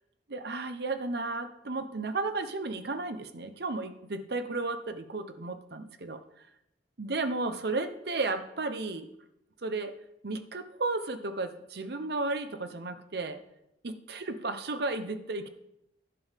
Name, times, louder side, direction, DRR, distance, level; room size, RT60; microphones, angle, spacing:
voice 1, 0.3-6.2 7.0-9.1 9.6-10.0 10.2-13.4 13.8-15.5, right 3 dB, 65° right, 10 dB, 0.9 m, -33 dB
10.5 x 5.5 x 7.3 m, 0.83 s
head